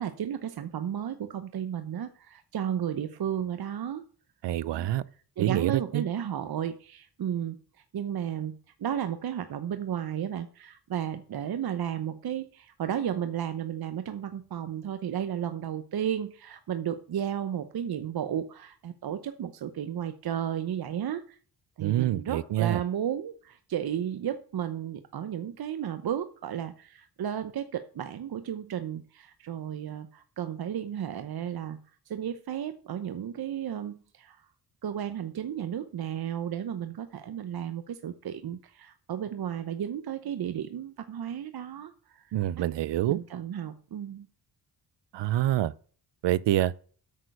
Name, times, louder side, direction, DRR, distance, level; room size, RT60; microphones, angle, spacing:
voice 1, 0.0-4.0 4.7-4.9 5.4-7.6 7.9-8.5 8.8-21.4 21.8-31.8 32.1-34.4 34.8-42.6 43.1-44.3, right 9 dB, 60° right, 0.9 m, -33 dB
voice 2, 4.4-5.0 5.4-6.0 21.8-22.8 42.3-43.2 45.1-45.7 46.2-46.7, right 13 dB, 90° right, 0.6 m, -26 dB
8.9 x 6.4 x 6.6 m
wide cardioid pair, 115°, 41 cm